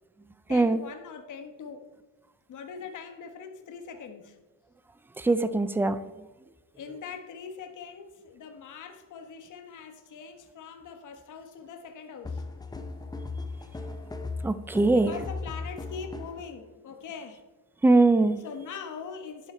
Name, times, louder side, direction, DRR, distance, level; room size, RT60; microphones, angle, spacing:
voice 1, 0.5-1.9 2.5-4.4 6.7-12.4 14.9-17.4 18.4-19.5, left 6 dB, 45° left, 6 dB, 1.3 m, -42 dB
voice 2, 5.2-6.0 14.4-15.2 17.8-18.4, right 2 dB, 5° right, 13 dB, 0.3 m, -21 dB
sound 1, 12.2-16.5, left 3 dB, 10° left, 0.7 m, -37 dB
11.5 x 8.8 x 4.5 m, 1.2 s
cardioid pair, 155°, 41 cm